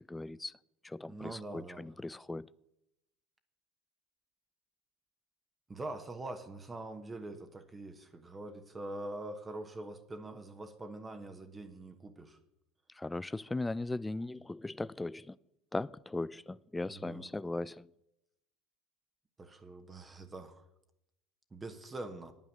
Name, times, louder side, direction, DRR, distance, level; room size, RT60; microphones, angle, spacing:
voice 1, 0.1-0.5 0.8-2.5 13.0-15.4 15.7-17.9, left 2 dB, 10° left, 0.3 m, -38 dB
voice 2, 1.1-1.8 5.7-12.4 16.8-17.3 19.4-20.7 21.5-22.3, right 2 dB, 20° right, 1.1 m, -44 dB
9.1 x 8.9 x 6.6 m
hypercardioid pair, 85°, 0 cm